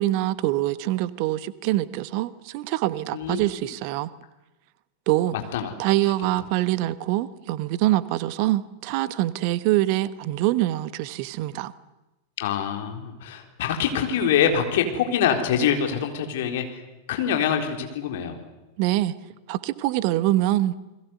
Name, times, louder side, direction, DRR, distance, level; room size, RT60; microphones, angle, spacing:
voice 1, 0.0-4.1 5.1-5.3 5.8-11.7 18.8-19.1 19.5-20.8, right 15 dB, 45° right, 16 dB, 1.2 m, -24 dB
voice 2, 3.1-3.5 5.3-5.7 12.4-16.8 17.1-18.4, left 8 dB, 55° left, 4 dB, 3.9 m, -25 dB
29.5 x 21.0 x 8.1 m, 1.0 s
figure-of-eight pair, 90°, 0 cm